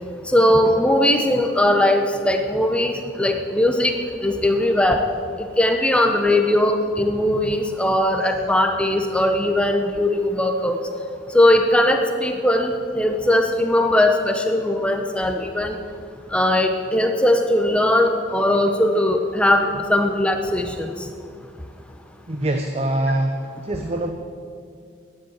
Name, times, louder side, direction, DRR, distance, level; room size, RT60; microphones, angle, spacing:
voice 1, 0.3-4.0 4.2-5.0 5.6-10.8 11.3-15.8 16.3-20.9, left 1 dB, 5° left, 4 dB, 0.8 m, -19 dB
voice 2, 22.3-23.4 23.6-24.1, right 1 dB, 35° right, 5 dB, 0.8 m, -23 dB
13.0 x 9.6 x 8.8 m, 2.3 s
head